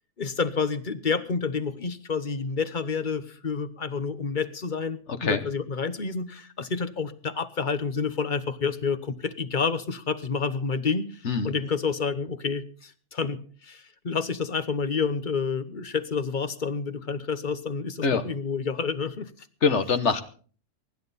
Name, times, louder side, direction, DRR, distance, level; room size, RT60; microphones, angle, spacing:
voice 1, 0.2-19.5, left 5 dB, 40° left, 12 dB, 1.1 m, -29 dB
voice 2, 19.6-20.2, left 5 dB, 65° left, 9 dB, 1.5 m, -24 dB
24.0 x 11.0 x 4.1 m, 0.43 s
omnidirectional pair, 1.3 m